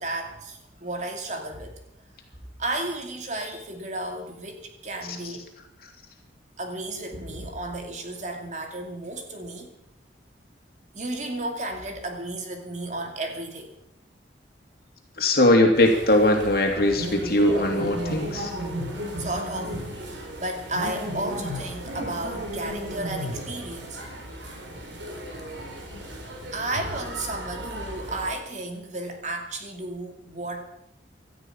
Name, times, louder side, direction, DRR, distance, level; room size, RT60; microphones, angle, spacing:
voice 1, 0.0-1.8 2.6-5.5 6.6-9.7 10.9-13.7 19.2-19.8 20.0-24.0 26.5-30.7, right 2 dB, 40° right, 4 dB, 2.4 m, -33 dB
voice 2, 15.2-18.5, left 1 dB, 55° left, 3 dB, 2.9 m, -20 dB
sound 1, 15.7-28.3, equal, 80° right, 4.1 m, -34 dB
17.5 x 13.0 x 5.7 m, 0.74 s
head